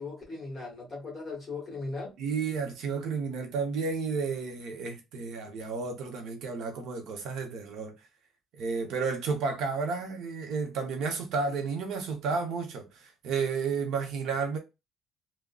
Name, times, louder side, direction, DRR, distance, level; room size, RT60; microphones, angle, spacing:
voice 1, 0.0-2.1, left 3 dB, 15° left, 1.3 m, -38 dB
voice 2, 2.2-7.9 8.5-14.6, right 5 dB, 60° right, 0.7 m, -32 dB
3.6 x 2.1 x 2.3 m
cardioid pair, 180°, 0 cm